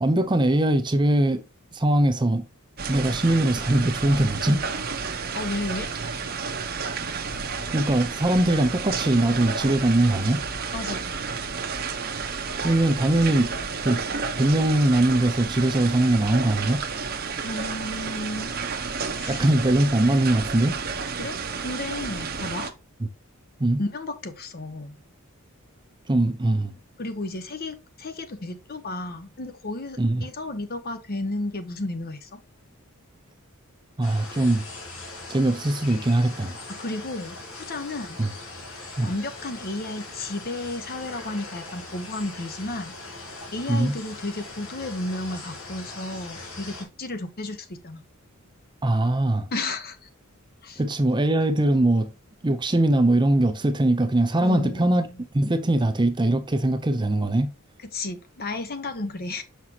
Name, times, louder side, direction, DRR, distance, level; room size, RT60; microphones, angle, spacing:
voice 1, 0.0-1.4 1.7-2.5 2.9-4.7 7.7-10.4 12.6-13.5 13.8-14.1 14.4-16.8 19.3-20.8 23.0-23.1 23.6-23.8 26.1-26.7 30.0-30.3 34.0-34.7 35.3-36.6 38.2-38.3 39.0-39.1 43.7-44.0 48.8-49.5 50.8-52.1 52.4-55.0 55.3-57.5, right 1 dB, 20° right, 0.6 m, -21 dB
sound 1, 2.8-22.7, right 5 dB, 45° right, 0.9 m, -31 dB
voice 2, 5.3-5.9 10.7-11.1 17.4-18.5 19.1-19.4 21.2-22.7 23.8-25.0 27.0-32.4 36.7-38.2 39.0-42.9 43.5-48.0 49.5-50.1 50.6-50.8 54.4-55.2 57.9-59.4, left 2 dB, 45° left, 0.9 m, -33 dB
sound 2, 34.0-46.8, left 2 dB, 70° left, 2.2 m, -40 dB
6.2 x 5.8 x 2.8 m
head